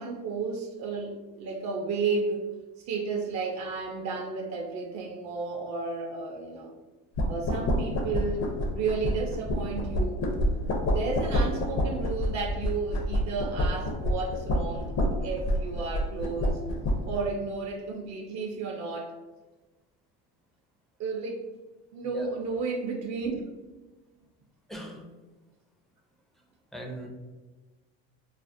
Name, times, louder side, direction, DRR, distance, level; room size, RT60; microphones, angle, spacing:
voice 1, 0.0-2.5 2.9-6.7 7.3-8.5 8.7-10.2 10.8-14.9 15.2-16.6 17.0-19.1 21.0-21.5 21.9-23.5, right 4 dB, 55° right, 2 dB, 0.5 m, -32 dB
sound 1, 7.2-17.2, left 1 dB, 50° left, 0.6 m, -28 dB
voice 2, 24.7-25.1 26.7-27.1, right 1 dB, ahead, 0 dB, 0.3 m, -40 dB
2.5 x 2.0 x 2.5 m, 1.2 s
supercardioid pair, 95°, 34 cm